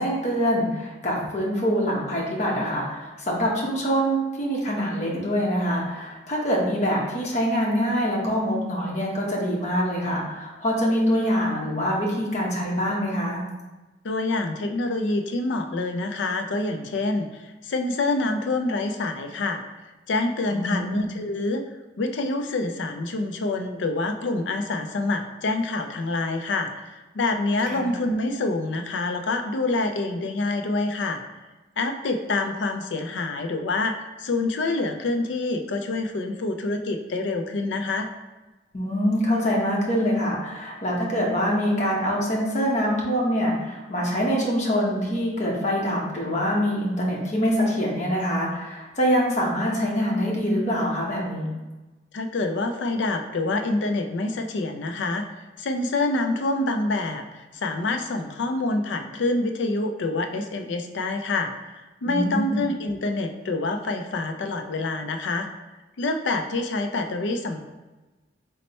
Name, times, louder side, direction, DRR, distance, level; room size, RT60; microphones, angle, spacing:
voice 1, 0.0-13.4 20.5-21.1 27.7-27.8 38.7-51.5 62.1-62.6, equal, 40° left, -3 dB, 0.9 m, -24 dB
voice 2, 14.0-19.6 20.1-31.2 31.8-38.1 52.1-55.3 55.6-65.5 66.0-67.6, left 2 dB, 85° left, 6 dB, 0.4 m, -26 dB
4.1 x 2.1 x 4.2 m, 1.2 s
head